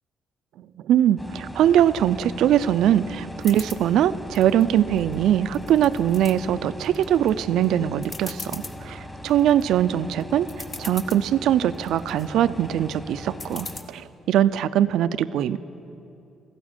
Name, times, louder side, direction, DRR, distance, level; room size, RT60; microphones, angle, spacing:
voice 1, 0.6-10.5 10.8-15.6, right 10 dB, 80° right, 14 dB, 0.4 m, -22 dB
sound 1, 1.2-13.8, left 1 dB, 10° left, 1.6 m, -40 dB
sound 2, 3.4-3.8 4.3-5.1 5.5-6.3 6.8-7.3 7.6-7.7 8.0-8.8 9.3-9.6 10.2-10.3 10.5-11.2 11.7-12.3 13.4-13.8, left 3 dB, 35° left, 1.0 m, -38 dB
15.0 x 12.5 x 7.2 m, 2.8 s
cardioid pair, 90°, 0 cm